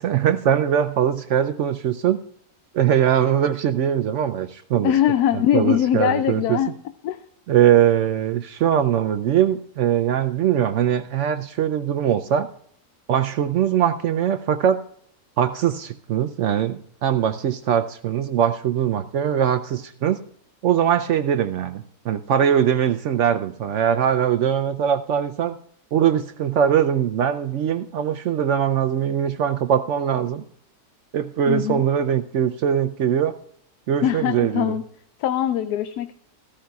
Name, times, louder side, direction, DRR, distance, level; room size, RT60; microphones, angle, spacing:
voice 1, 0.0-2.2 2.7-4.9 5.5-6.6 7.5-12.5 13.1-14.8 15.4-20.2 20.6-25.6 25.9-30.4 31.1-33.3 33.9-34.8, right 9 dB, 65° right, 10 dB, 0.7 m, -21 dB
voice 2, 4.8-6.7 7.0-7.2 31.5-31.9 34.0-34.8 35.2-36.1, left 11 dB, 85° left, 10 dB, 1.1 m, -21 dB
14.5 x 13.0 x 2.3 m, 0.64 s
omnidirectional pair, 1.6 m